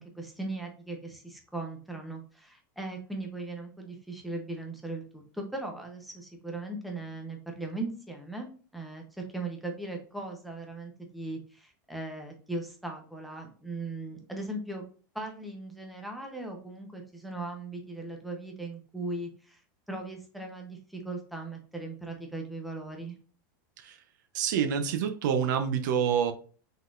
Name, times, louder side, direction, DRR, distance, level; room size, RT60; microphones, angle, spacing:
voice 1, 0.0-14.8 15.1-19.6 19.9-23.1, right 2 dB, ahead, 0.8 m, -38 dB
voice 2, 24.3-26.3, right 8 dB, 65° right, 0.7 m, -27 dB
5.4 x 3.9 x 2.4 m
supercardioid pair, 160°, 11 cm